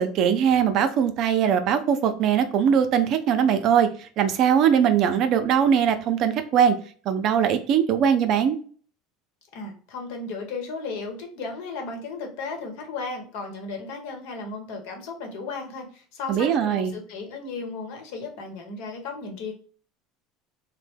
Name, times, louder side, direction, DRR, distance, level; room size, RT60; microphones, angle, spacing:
voice 1, 0.0-3.9 4.2-6.8 7.1-8.6 16.3-16.9, right 8 dB, 55° right, 8 dB, 0.5 m, -21 dB
voice 2, 9.5-19.5, left 3 dB, 70° left, 3 dB, 1.1 m, -35 dB
3.2 x 2.1 x 3.4 m, 0.43 s
supercardioid pair, 100°, 0 cm